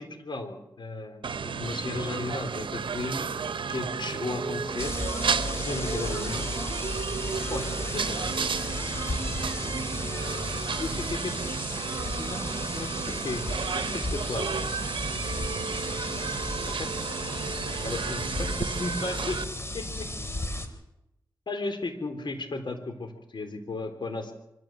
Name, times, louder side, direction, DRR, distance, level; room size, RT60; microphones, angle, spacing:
voice 1, 0.0-3.3 3.7-6.5 7.5-8.5 10.8-11.3 12.2-13.4 13.7-14.6 16.7-16.9 17.8-19.4 19.7-20.1 21.5-24.3, left 2 dB, 65° left, 6 dB, 3.8 m, -35 dB
sound 1, 1.2-19.4, right 5 dB, 80° right, 1.0 m, -32 dB
sound 2, 4.8-20.7, left 1 dB, 30° left, 3.5 m, -34 dB
24.5 x 14.0 x 7.8 m, 0.87 s
cardioid pair, 45°, 8 cm